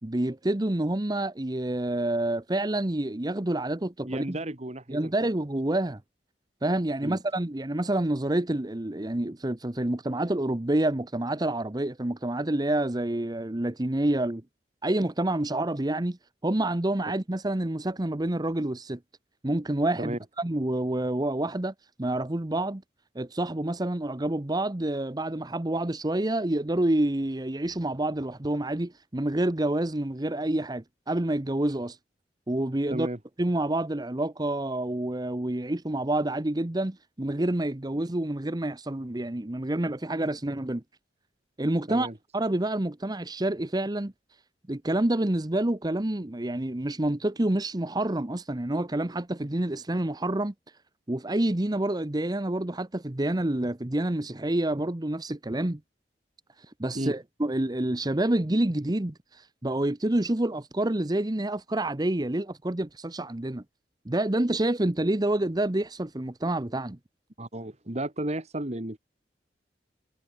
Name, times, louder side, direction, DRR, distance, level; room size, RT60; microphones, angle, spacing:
voice 1, 0.0-4.4 4.9-6.0 6.6-14.4 14.8-16.2 16.4-19.0 19.4-22.8 23.1-32.0 32.5-33.1 33.4-40.8 41.6-44.1 44.7-50.5 51.1-55.8 56.8-63.6 64.1-67.0, right 1 dB, 25° right, 0.9 m, -28 dB
voice 2, 4.1-5.3 7.0-7.2 20.0-20.2 32.9-33.2 41.9-42.1 56.9-57.1 67.4-69.0, right 1 dB, 40° right, 2.1 m, -33 dB
head